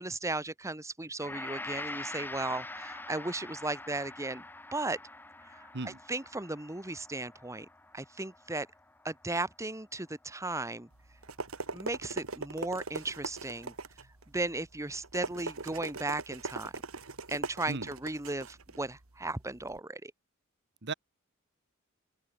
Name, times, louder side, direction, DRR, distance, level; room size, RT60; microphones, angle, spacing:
voice 1, 0.0-4.4 4.7-5.0 5.5-7.7 7.9-8.7 9.0-10.9 11.7-13.7 14.3-16.7 17.3-20.1, right 2 dB, 15° right, 1.5 m, -36 dB
Gong, 1.2-9.6 10.0-10.1, left 2 dB, 10° left, 0.9 m, -45 dB
voice 2, 5.7-6.0 17.7-17.9 20.8-20.9, right 3 dB, 55° right, 1.4 m, -36 dB
sound 1, 10.9-19.8, right 3 dB, 85° right, 2.1 m, -41 dB
open air
head